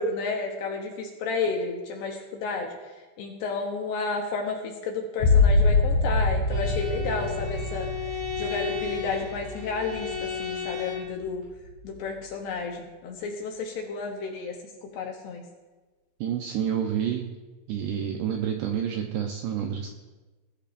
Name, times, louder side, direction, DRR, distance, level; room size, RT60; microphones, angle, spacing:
voice 1, 0.0-2.7 3.2-7.9 8.4-11.4 11.8-14.6 14.9-15.4, left 4 dB, 75° left, 1 dB, 2.6 m, -31 dB
sound 1, 5.2-10.7 11.1-11.7, left 3 dB, 45° left, 3.0 m, -25 dB
Bowed string instrument, 6.5-11.2, left 7 dB, 50° right, 4.9 m, -34 dB
voice 2, 16.2-17.3 17.7-19.9, right 8 dB, 80° right, 3 dB, 2.4 m, -29 dB
21.0 x 12.5 x 2.6 m, 1.3 s
omnidirectional pair, 5.7 m